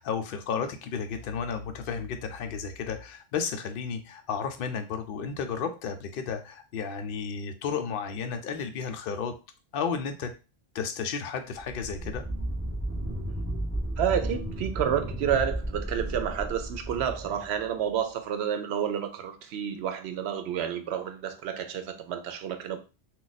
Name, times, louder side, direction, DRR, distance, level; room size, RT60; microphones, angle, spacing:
voice 1, 0.0-9.3 9.7-10.3 10.7-12.2, left 6 dB, 65° left, 6 dB, 0.7 m, -33 dB
sound 1, 11.6-18.0, right 1 dB, 15° right, 0.7 m, -33 dB
voice 2, 14.0-22.8, right 9 dB, 85° right, 8 dB, 0.8 m, -30 dB
2.5 x 2.2 x 3.9 m, 0.31 s
omnidirectional pair, 1.1 m